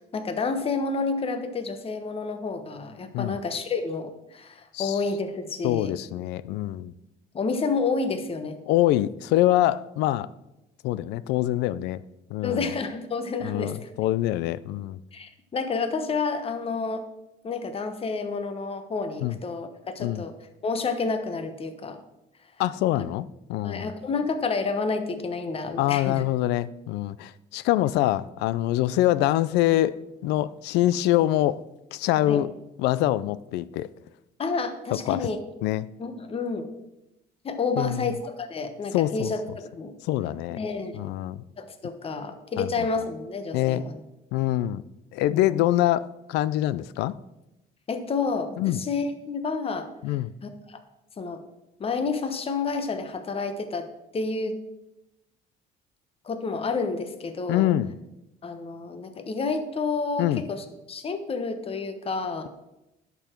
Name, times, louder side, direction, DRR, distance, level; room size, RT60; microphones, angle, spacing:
voice 1, 0.0-6.0 7.3-8.6 12.4-13.9 15.1-17.0 17.4-20.3 20.6-22.0 23.0-23.1 23.6-26.2 32.3-32.4 34.4-35.4 36.0-36.7 37.4-40.0 40.6-41.0 41.6-44.0 45.3-45.6 47.9-49.9 50.4-50.8 51.2-51.4 51.8-53.9 54.1-54.6 56.2-57.7 58.4-62.5, left 4 dB, 35° left, 9 dB, 1.1 m, -29 dB
voice 2, 5.6-6.9 8.7-10.3 10.8-12.0 12.3-12.7 13.4-15.0 19.2-19.4 20.0-20.2 22.6-23.9 25.8-30.0 30.2-31.6 31.9-32.5 32.8-33.9 34.9-35.3 35.6-35.9 37.8-38.1 38.9-39.3 40.0-40.6 41.0-41.4 42.6-42.9 43.5-43.8 44.3-44.8 45.1-47.1 48.6-48.8 50.0-50.3 57.5-57.9 60.2-60.4, left 14 dB, 90° left, 18 dB, 0.4 m, -25 dB
11.0 x 7.0 x 4.5 m, 0.92 s
cardioid pair, 110°, 17 cm